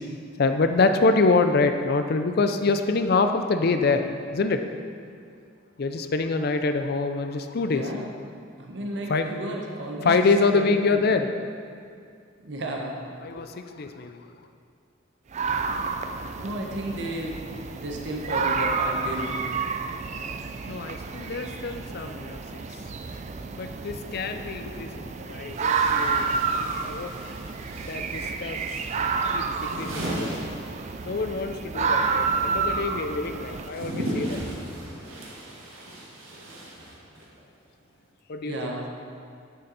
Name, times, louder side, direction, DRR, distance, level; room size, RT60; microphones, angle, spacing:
voice 1, 0.4-4.1 4.3-4.7 5.8-7.9 9.1-9.2 10.0-11.3 13.2-14.2 20.6-22.8 23.5-26.3 26.6-27.2 27.8-30.3 31.1-34.4 38.3-38.6, left 3 dB, 50° left, 7 dB, 0.5 m, -25 dB
voice 2, 7.7-8.1 8.6-10.2 10.5-11.0 12.4-13.0 16.4-17.4 17.7-19.4 38.4-38.9, right 1 dB, 65° right, 0 dB, 1.1 m, -33 dB
sound 1, 15.3-33.7, right 5 dB, 35° right, 0.4 m, -29 dB
sound 2, 25.5-31.3 31.5-37.4, right 1 dB, 85° right, 1.6 m, -37 dB
8.8 x 6.7 x 4.1 m, 2.3 s
head